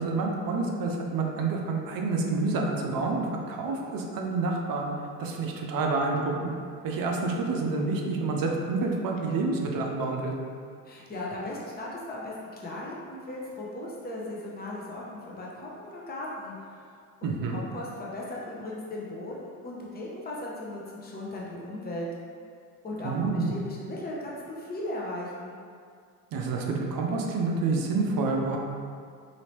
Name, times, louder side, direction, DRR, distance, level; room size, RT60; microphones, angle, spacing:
voice 1, 0.0-4.9 5.2-6.5 6.8-10.3 17.2-17.6 23.0-23.5 26.3-28.6, right 3 dB, 50° right, 1 dB, 0.6 m, -28 dB
voice 2, 10.8-12.3 12.6-16.5 17.2-22.1 22.8-25.6, left 1 dB, 20° left, -4 dB, 0.7 m, -37 dB
2.8 x 2.8 x 3.1 m, 2.2 s
hypercardioid pair, 60°, 46 cm